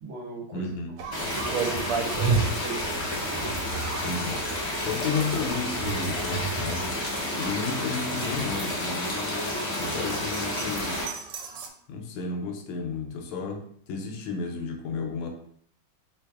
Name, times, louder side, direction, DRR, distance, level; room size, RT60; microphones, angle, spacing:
voice 1, 0.0-0.7 1.3-2.8, right 3 dB, 65° right, -4 dB, 1.8 m, -37 dB
voice 2, 0.5-1.0 4.0-4.4 4.8-7.0 7.3-11.0 11.9-15.3, left 4 dB, 80° left, 3 dB, 1.5 m, -32 dB
sound 1, 1.0-11.7, right 5 dB, 90° right, 1.5 m, -34 dB
sound 2, 1.1-11.1, left 1 dB, 55° left, 0.7 m, -30 dB
3.5 x 3.3 x 2.3 m, 0.62 s
omnidirectional pair, 2.4 m